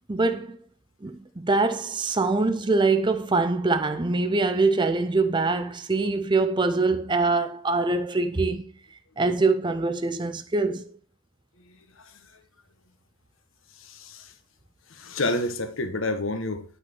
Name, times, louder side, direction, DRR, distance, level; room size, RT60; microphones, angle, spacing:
voice 1, 0.1-0.6 1.0-8.6 9.2-10.9, right 3 dB, 20° right, 0.6 m, -24 dB
voice 2, 11.6-12.2 13.8-14.3 14.9-16.6, left 2 dB, 70° left, 1.3 m, -30 dB
9.9 x 6.0 x 6.0 m
head